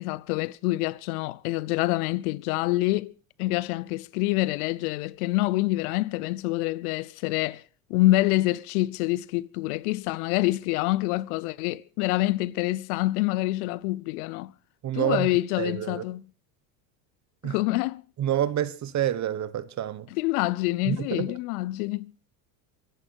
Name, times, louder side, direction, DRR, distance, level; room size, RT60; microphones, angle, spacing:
voice 1, 0.0-3.1 3.4-7.6 7.9-14.5 14.9-16.2 17.4-18.0 20.1-22.1, left 18 dB, 75° left, 0.8 m, -26 dB
voice 2, 14.8-15.3 15.6-16.0 17.4-17.6 18.2-20.1 20.8-21.3, right 11 dB, 40° right, 1.2 m, -28 dB
24.0 x 11.5 x 4.7 m
supercardioid pair, 100°, 45 cm